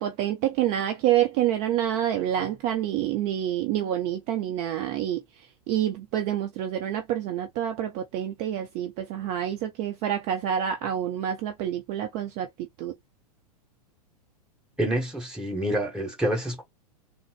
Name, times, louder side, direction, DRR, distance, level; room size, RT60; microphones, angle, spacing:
voice 1, 0.0-5.2 5.7-12.9, right 11 dB, 35° right, 0.6 m, -27 dB
voice 2, 14.8-16.6, right 1 dB, 5° right, 1.8 m, -27 dB
3.8 x 2.0 x 3.1 m
figure-of-eight pair, 100°, 20 cm